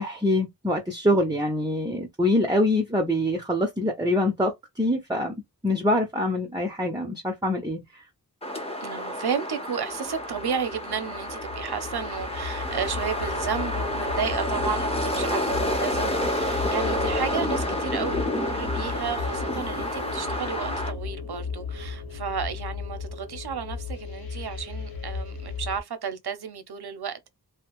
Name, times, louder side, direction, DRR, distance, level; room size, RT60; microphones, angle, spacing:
voice 1, 0.0-5.3 5.6-8.0, left 1 dB, 10° right, 0.7 m, -25 dB
sound 1, 8.4-20.9, left 1 dB, 15° left, 0.9 m, -29 dB
voice 2, 8.8-27.3, right 6 dB, 80° right, 0.7 m, -32 dB
sound 2, 10.0-25.8, left 5 dB, 65° left, 1.0 m, -35 dB
2.7 x 2.1 x 2.9 m
wide cardioid pair, 75°, 38 cm